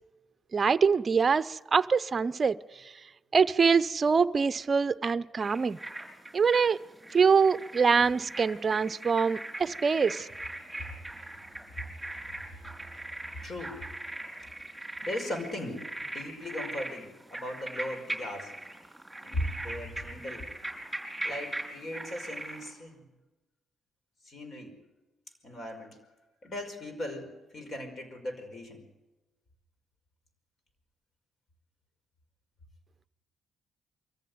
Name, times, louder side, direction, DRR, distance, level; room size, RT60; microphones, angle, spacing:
voice 1, 0.5-2.6 3.3-5.8 6.3-6.8 7.1-10.3, right 5 dB, 35° right, 14 dB, 0.6 m, -24 dB
sound 1, 5.4-22.7, right 1 dB, 10° right, 5.4 m, -40 dB
voice 2, 13.4-13.8 15.0-15.8 16.1-18.5 19.2-20.5 21.2-23.0 24.2-24.8 25.4-26.0 26.4-28.8, left 1 dB, 45° left, 6 dB, 5.1 m, -38 dB
23.5 x 14.5 x 9.5 m, 1.1 s
cardioid pair, 90°, 0 cm